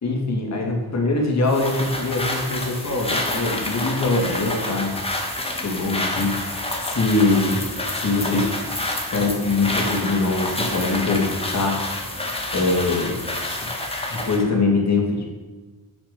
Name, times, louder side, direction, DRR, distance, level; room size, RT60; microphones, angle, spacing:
voice 1, 0.0-5.1 5.6-7.6 7.9-8.7 9.1-11.8 12.5-13.2 13.5-13.7 14.1-15.3, left 3 dB, 45° left, 1 dB, 2.8 m, -23 dB
sound 1, 1.5-14.5, left 1 dB, 15° left, 1.8 m, -28 dB
10.5 x 8.0 x 7.0 m, 1.3 s
wide cardioid pair, 155°, 36 cm